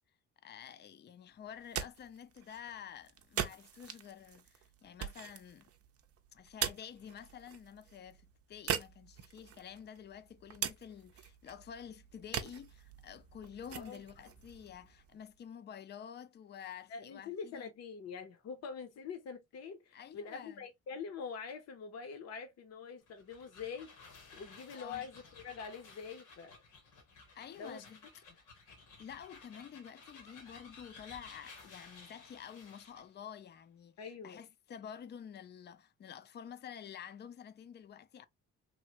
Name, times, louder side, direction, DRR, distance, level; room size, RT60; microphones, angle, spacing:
voice 1, 0.4-5.7 6.3-17.7 19.9-20.6 24.7-25.1 27.3-28.0 28.3-28.4 29.0-38.3, left 8 dB, 35° left, 0.4 m, -50 dB
sound 1, 1.5-15.4, right 9 dB, 50° right, 0.5 m, -43 dB
voice 2, 16.9-26.6 27.6-27.8 34.0-34.4, left 6 dB, 60° left, 0.7 m, -45 dB
sound 2, 23.0-33.1, left 4 dB, 85° left, 1.2 m, -56 dB
3.1 x 2.1 x 2.8 m
cardioid pair, 90°, 30 cm